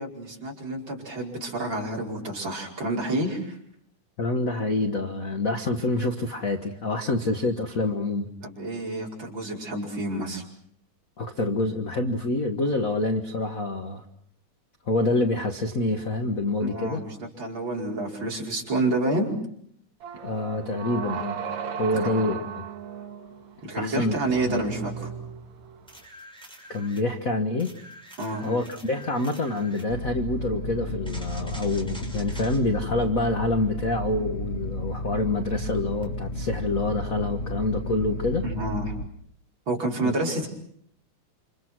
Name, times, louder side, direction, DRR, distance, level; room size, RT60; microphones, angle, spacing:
voice 1, 0.0-3.6 8.4-10.4 16.6-19.3 23.6-24.9 28.2-28.4 38.4-38.9 39.7-40.5, right 2 dB, 35° right, -2 dB, 5.6 m, -29 dB
voice 2, 4.2-8.3 11.2-14.0 14.9-17.0 20.2-21.4 21.8-22.6 23.7-24.2 24.5-24.6 26.7-27.7 28.4-38.4 40.0-40.1, left 2 dB, 50° left, 6 dB, 1.0 m, -26 dB
sound 1, 20.0-26.0, right 7 dB, 65° right, 2.8 m, -36 dB
sound 2, 25.9-27.1 27.6-29.9 31.0-32.6 36.0-36.1, equal, ahead, 6.0 m, -46 dB
sound 3, 29.9-39.0, left 1 dB, 65° left, 0.6 m, -33 dB
29.0 x 26.5 x 6.1 m, 0.66 s
omnidirectional pair, 3.5 m